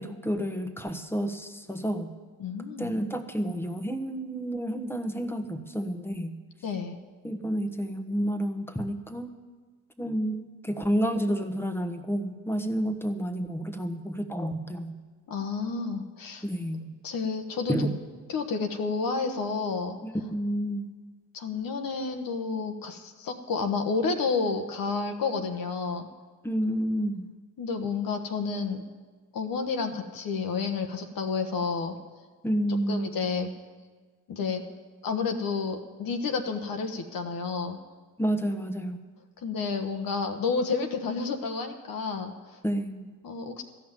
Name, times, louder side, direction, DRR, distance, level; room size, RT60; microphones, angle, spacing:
voice 1, 0.0-2.1 2.8-6.3 7.2-9.3 10.0-14.9 16.4-16.9 17.7-17.9 20.0-20.9 26.4-27.3 32.4-33.2 38.2-39.0 42.6-43.1, equal, 5° left, 7 dB, 1.3 m, -30 dB
voice 2, 2.4-2.9 6.6-7.0 15.3-16.4 17.0-17.9 18.3-20.0 21.3-26.1 27.6-28.8 29.3-32.0 32.9-33.5 34.3-34.6 35.0-37.8 39.4-42.6 43.2-43.6, left 4 dB, 55° left, 4 dB, 1.2 m, -30 dB
13.5 x 5.9 x 9.1 m, 1.4 s
supercardioid pair, 60°, 41 cm